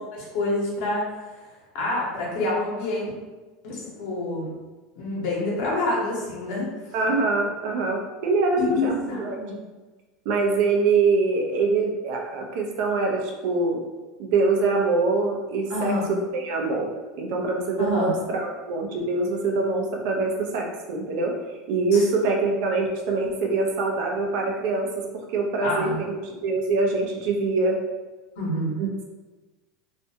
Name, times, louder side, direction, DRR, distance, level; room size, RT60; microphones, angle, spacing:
voice 1, 0.1-1.0 1.7-3.1 3.6-4.5 5.0-6.7 8.6-9.5 15.7-16.1 17.8-18.2 21.9-22.0 25.6-26.0 28.4-28.7, left 2 dB, 70° left, -3 dB, 1.0 m, -27 dB
voice 2, 6.9-9.4 10.3-13.8 14.2-16.9 17.2-21.4 21.7-27.8 28.8-29.0, right 3 dB, 70° right, 1 dB, 0.5 m, -24 dB
2.5 x 2.2 x 2.7 m, 1.2 s
supercardioid pair, 100°, 0 cm